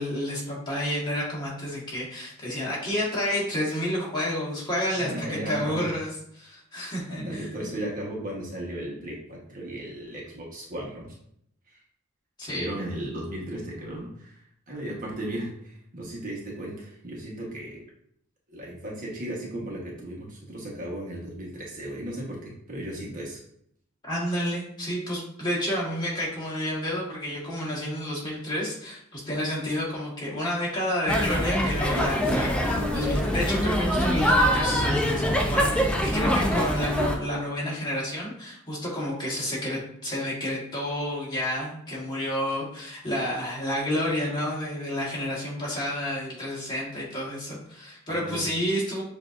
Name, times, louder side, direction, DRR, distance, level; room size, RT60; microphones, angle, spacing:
voice 1, 0.0-7.7 12.4-12.8 24.0-49.0, left 1 dB, 20° left, -6 dB, 1.6 m, -30 dB
voice 2, 4.9-5.8 7.1-11.1 11.7-11.8 12.4-14.4 14.7-17.8 18.5-23.4 36.2-36.4 48.1-48.4, right 1 dB, 40° right, -3 dB, 1.2 m, -36 dB
sound 1, 31.1-37.2, equal, 5° left, 0.5 m, -24 dB
7.2 x 2.7 x 2.5 m, 0.70 s
head